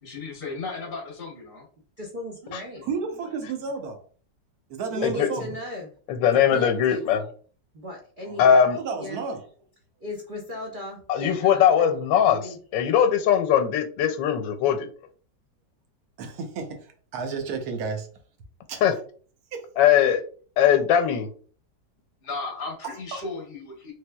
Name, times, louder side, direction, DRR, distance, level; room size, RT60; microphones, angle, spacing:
voice 1, 0.0-1.7 22.2-23.9, left 3 dB, 50° left, -1 dB, 0.7 m, -35 dB
voice 2, 2.0-2.9 4.9-5.9 6.5-7.0 7.7-8.7 9.0-9.2 10.0-11.9 12.2-12.6, left 2 dB, 85° right, -2 dB, 0.4 m, -37 dB
voice 3, 2.8-4.0 4.7-5.5 8.2-9.5 16.2-18.1 18.7-18.8 19.5-19.7 22.8-23.2, right 5 dB, 65° right, 5 dB, 1.1 m, -32 dB
voice 4, 6.1-7.2 8.4-8.8 11.1-12.4 12.7-14.9 18.8-18.9 19.8-20.2 20.6-21.3, left 8 dB, 90° left, 7 dB, 1.3 m, -20 dB
3.2 x 3.0 x 2.2 m, 0.43 s
omnidirectional pair, 1.9 m